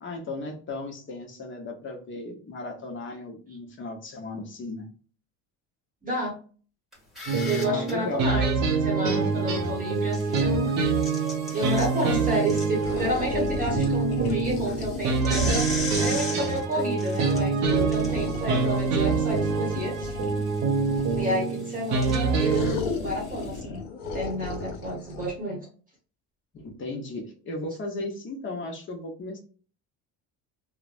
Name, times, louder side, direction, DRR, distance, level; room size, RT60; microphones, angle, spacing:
voice 1, 0.0-4.9 7.6-8.4 26.5-29.4, left 2 dB, 30° left, 1 dB, 0.9 m, -36 dB
voice 2, 6.0-6.3 7.4-8.5 8.8-10.7 11.5-15.7 15.9-20.1 21.2-23.8 24.1-25.7, right 1 dB, 20° right, -1 dB, 0.9 m, -30 dB
sound 1, 6.9-7.9 9.9-13.5 13.8-13.9 14.4-23.6, left 2 dB, ahead, 1.1 m, -39 dB
sound 2, 7.3-22.7, right 4 dB, 50° right, 0.6 m, -26 dB
sound 3, 12.8-16.2 17.6-21.4 22.4-25.3, left 4 dB, 70° left, 1.1 m, -34 dB
3.1 x 2.1 x 2.4 m, 0.40 s
cardioid pair, 125°, 37 cm